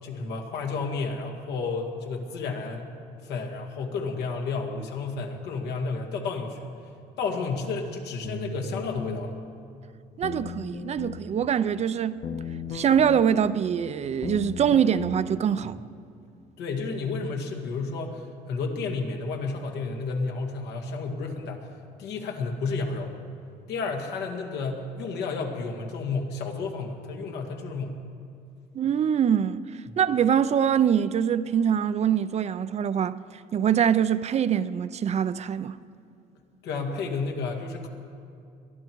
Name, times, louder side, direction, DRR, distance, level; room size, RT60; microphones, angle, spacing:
voice 1, 0.0-2.9 3.2-6.7 7.2-9.3 15.6-15.7 16.6-21.7 22.0-23.1 23.7-27.9 36.6-37.9, left 4 dB, 90° left, 2.1 m, -31 dB
sound 1, 8.2-9.2 10.2-11.2 12.2-13.2 14.2-15.2, left 5 dB, 55° left, 1.2 m, -35 dB
voice 2, 10.2-12.2 12.7-15.8 28.7-29.7 30.0-33.2 33.5-35.8, right 8 dB, 40° right, 0.5 m, -24 dB
22.0 x 12.5 x 4.6 m
cardioid pair, 110°, 17 cm